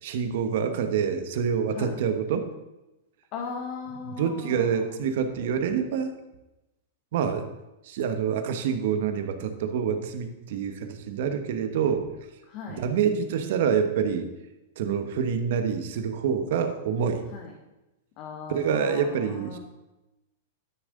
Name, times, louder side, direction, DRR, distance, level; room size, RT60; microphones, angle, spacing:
voice 1, 0.0-2.5 4.0-6.1 7.1-7.5 7.8-12.1 12.7-14.3 14.8-17.2 18.5-19.6, right 7 dB, 65° right, 8 dB, 1.2 m, -27 dB
voice 2, 3.3-4.7 12.5-12.8 17.3-17.5 18.2-19.6, left 5 dB, 45° left, 0 dB, 1.6 m, -38 dB
13.0 x 6.5 x 3.9 m, 0.97 s
hypercardioid pair, 130°, 0 cm